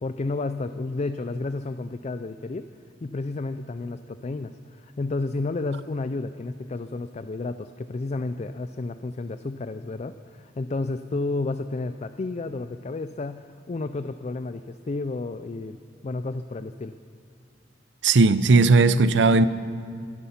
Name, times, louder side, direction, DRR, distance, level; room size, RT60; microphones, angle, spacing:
voice 1, 0.0-2.7 3.0-15.8 16.0-17.0, left 3 dB, 35° left, 11 dB, 0.4 m, -31 dB
voice 2, 18.0-19.5, right 3 dB, 75° right, 14 dB, 0.6 m, -17 dB
25.0 x 9.9 x 5.8 m, 2.4 s
head